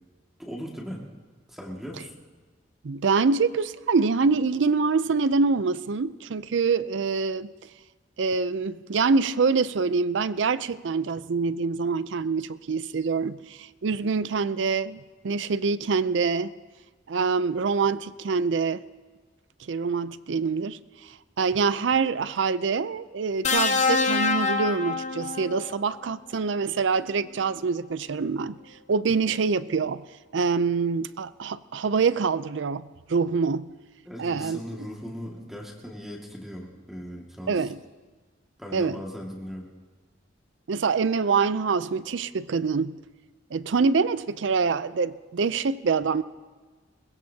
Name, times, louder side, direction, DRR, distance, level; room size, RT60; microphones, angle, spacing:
voice 1, 0.4-1.0 1.5-2.1 34.1-37.7 38.6-39.7, equal, ahead, -2 dB, 2.0 m, -38 dB
voice 2, 2.8-7.5 8.2-16.5 17.1-18.8 19.6-20.8 21.4-28.6 28.9-30.0 30.3-33.7 34.2-34.6 37.5-37.8 38.7-39.0 40.7-43.0 43.5-46.2, right 4 dB, 70° right, 16 dB, 0.5 m, -25 dB
sound 1, 23.4-25.7 27.0-27.2, left 4 dB, 40° left, 0.9 m, -25 dB
22.0 x 21.0 x 2.8 m, 1.4 s
head